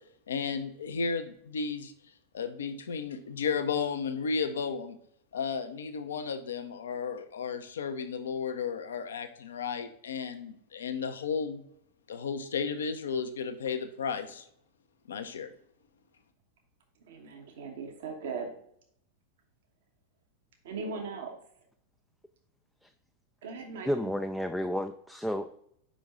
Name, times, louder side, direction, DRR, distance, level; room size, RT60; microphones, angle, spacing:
voice 1, 0.3-1.9 2.3-5.0 5.3-11.6 12.1-14.4 15.1-15.5, left 5 dB, 65° left, 8 dB, 0.6 m, -33 dB
voice 2, 17.0-18.5 20.6-21.4 23.4-24.1, right 4 dB, 55° right, 3 dB, 1.2 m, -39 dB
voice 3, 23.9-25.6, equal, ahead, 6 dB, 0.3 m, -31 dB
5.3 x 5.1 x 3.6 m, 0.69 s
figure-of-eight pair, 90°, 0 cm